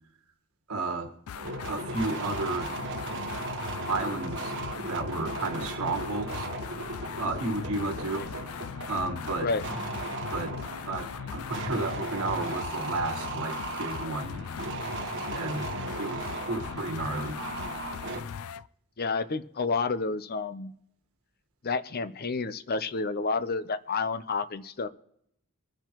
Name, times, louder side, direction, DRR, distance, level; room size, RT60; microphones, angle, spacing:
voice 1, 0.7-1.1 1.7-2.7 3.9-4.5 4.8-6.5 7.2-8.3 8.9-9.5 10.3-10.5 10.9-14.4 15.3-15.7 16.0-17.4, right 3 dB, 85° right, 4 dB, 1.6 m, -32 dB
sound 1, 1.3-18.7, left 7 dB, 80° left, 0.4 m, -39 dB
sound 2, 1.3-18.2, right 2 dB, 60° right, 1.4 m, -37 dB
voice 2, 19.0-20.7 21.6-24.9, left 4 dB, 45° left, 13 dB, 0.7 m, -30 dB
24.5 x 10.0 x 3.0 m, 0.75 s
head